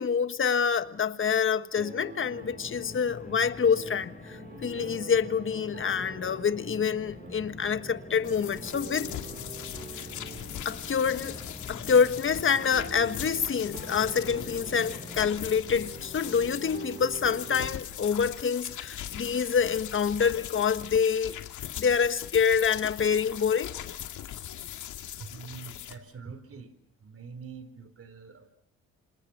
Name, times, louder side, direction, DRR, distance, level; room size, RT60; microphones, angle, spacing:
voice 1, 0.0-9.1 10.6-11.4 11.7-21.4 21.8-23.7, left 6 dB, 40° left, 1.5 m, -26 dB
sound 1, 1.8-17.7, right 4 dB, 35° right, 2.8 m, -46 dB
sound 2, 2.0-15.9, left 4 dB, 25° left, 1.5 m, -46 dB
sound 3, 8.2-25.9, left 11 dB, 75° left, 2.5 m, -40 dB
voice 2, 25.1-26.7 27.0-28.5, right 5 dB, 50° right, 4.1 m, -45 dB
27.5 x 27.0 x 6.1 m
cardioid pair, 90°, 30 cm